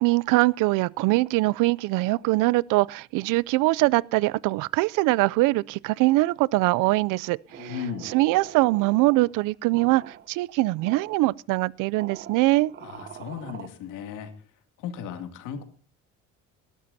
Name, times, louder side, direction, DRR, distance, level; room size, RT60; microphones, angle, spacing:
voice 1, 0.0-12.7, right 21 dB, 80° right, 0.5 m, -23 dB
sound 1, 7.5-9.3 9.7-10.3 10.8-11.2 12.0-13.7, right 9 dB, 35° right, 0.8 m, -43 dB
voice 2, 7.6-8.1 12.8-14.3 14.8-15.6, left 7 dB, 80° left, 2.5 m, -35 dB
19.0 x 13.0 x 2.7 m
cardioid pair, 165°, 31 cm